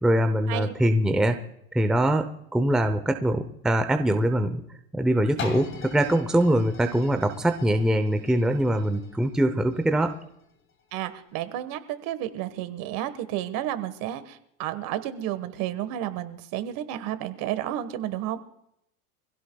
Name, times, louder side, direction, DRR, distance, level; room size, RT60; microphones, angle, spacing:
voice 1, 0.0-1.4 1.7-4.6 4.9-10.2, right 1 dB, ahead, 7 dB, 0.7 m, -23 dB
sound 1, 5.4-11.1 11.7-11.8, left 2 dB, 30° left, 2.6 m, -41 dB
voice 2, 10.9-18.4, right 12 dB, 50° right, 11 dB, 1.5 m, -31 dB
25.0 x 16.5 x 2.3 m, 0.77 s
supercardioid pair, 140°, 43 cm